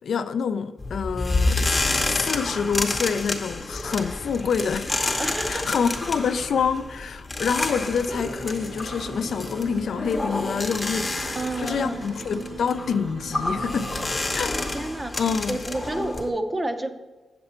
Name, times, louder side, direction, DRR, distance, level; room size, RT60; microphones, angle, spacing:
voice 1, 0.0-5.1 5.5-11.1 11.6-13.9 14.3-14.6 15.2-15.6, left 6 dB, 60° left, 0.4 m, -27 dB
sound 1, 0.8-16.3, left 2 dB, 20° left, 0.8 m, -29 dB
voice 2, 5.2-5.7 11.3-12.1 14.7-15.2 15.5-16.9, right 2 dB, 15° right, 0.5 m, -30 dB
sound 2, 8.1-14.1, right 3 dB, 90° right, 0.8 m, -40 dB
8.7 x 6.8 x 4.3 m
wide cardioid pair, 170°, 0 cm